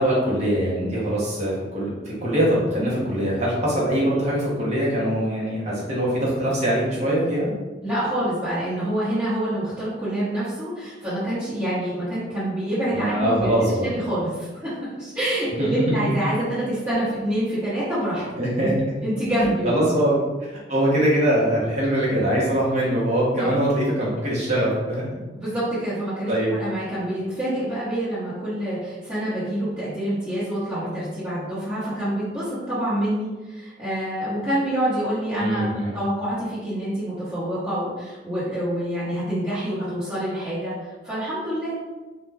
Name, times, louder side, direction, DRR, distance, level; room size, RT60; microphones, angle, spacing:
voice 1, 0.0-7.5 12.9-13.9 15.6-16.0 18.4-18.7 19.6-20.1 20.5-25.2 26.3-26.5 35.4-36.0, right 1 dB, 40° right, -5 dB, 0.8 m, -22 dB
voice 2, 7.8-13.5 13.8-18.2 18.6-18.7 19.0-20.0 23.4-23.5 25.3-35.7 35.9-41.7, right 1 dB, 15° right, -16 dB, 1.1 m, -27 dB
2.4 x 2.2 x 3.3 m, 1.2 s
head